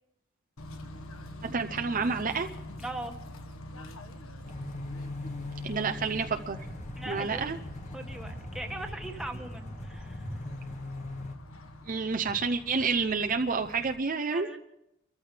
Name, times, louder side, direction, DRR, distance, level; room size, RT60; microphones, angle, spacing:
Bird / Train, 0.6-13.9, left 1 dB, 80° left, 1.5 m, -46 dB
voice 1, 1.4-2.5 5.6-6.6 7.1-7.6 11.9-14.5, right 4 dB, 40° right, 5 dB, 0.6 m, -29 dB
voice 2, 2.8-3.2 7.0-7.5 7.9-10.3 14.2-14.6, right 1 dB, 5° right, 3 dB, 1.4 m, -40 dB
sound 1, 4.4-11.4, left 2 dB, 35° left, 1.5 m, -40 dB
30.0 x 14.5 x 3.4 m, 0.83 s
head